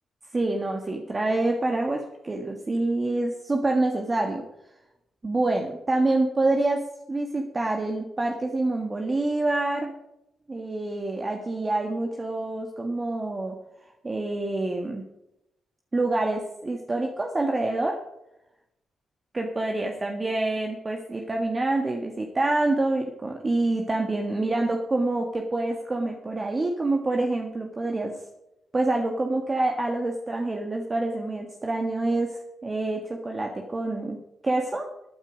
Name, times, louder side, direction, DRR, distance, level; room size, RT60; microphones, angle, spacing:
voice 1, 0.3-4.4 5.2-6.8 7.1-9.9 10.5-13.6 14.0-15.0 15.9-18.0 19.3-28.2 28.7-34.2 34.4-34.9, right 2 dB, 35° right, 2 dB, 1.7 m, -26 dB
14.5 x 9.2 x 5.1 m, 0.87 s
cardioid pair, 60°, 0 cm